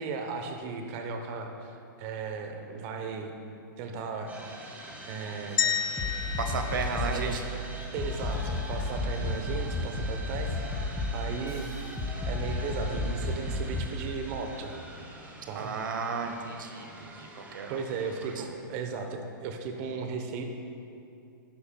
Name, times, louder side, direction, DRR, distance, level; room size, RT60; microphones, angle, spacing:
voice 1, 0.0-3.3 3.8-4.3 5.1-5.6 6.9-7.4 7.9-11.7 12.3-14.7 15.5-15.8 17.7-20.4, right 5 dB, 40° right, 5 dB, 0.9 m, -36 dB
sound 1, 4.3-18.5, right 2 dB, 15° right, 1.2 m, -45 dB
sound 2, 5.6-7.8, left 7 dB, 75° left, 0.6 m, -32 dB
sound 3, 6.0-7.3 8.0-14.0, left 2 dB, 5° left, 2.1 m, -32 dB
voice 2, 6.4-7.4 15.5-17.8, right 5 dB, 70° right, 5 dB, 0.9 m, -34 dB
11.0 x 10.0 x 2.2 m, 2.7 s
hypercardioid pair, 125°, 11 cm